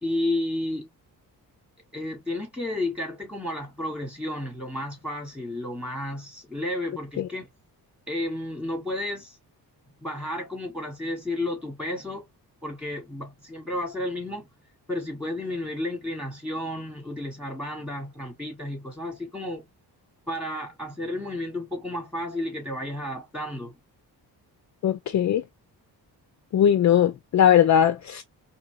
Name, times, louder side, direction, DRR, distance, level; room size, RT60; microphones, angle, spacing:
voice 1, 0.0-0.9 1.9-7.5 8.1-9.4 10.0-12.3 12.6-14.5 14.9-19.7 20.3-23.8, left 1 dB, 5° right, 2.0 m, -32 dB
voice 2, 24.8-25.4 26.5-28.2, left 9 dB, 45° left, 0.5 m, -19 dB
3.9 x 2.8 x 2.3 m
cardioid pair, 135°, 40 cm